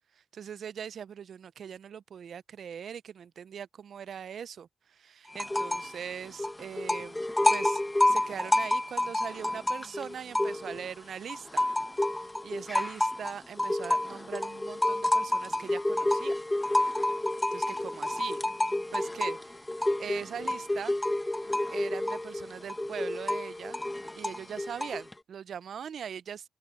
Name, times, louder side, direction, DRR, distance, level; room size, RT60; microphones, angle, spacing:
voice 1, 0.2-7.2 7.5-11.6 12.0-16.3 17.5-18.4 18.9-19.6 20.0-21.0 21.7-23.8 24.2-26.5, right 8 dB, 75° right, 0.4 m, -41 dB
sound 1, 5.3-6.0 6.2-10.9 11.3-25.1, left 1 dB, 15° left, 0.9 m, -29 dB
open air
supercardioid pair, 45°, 0 cm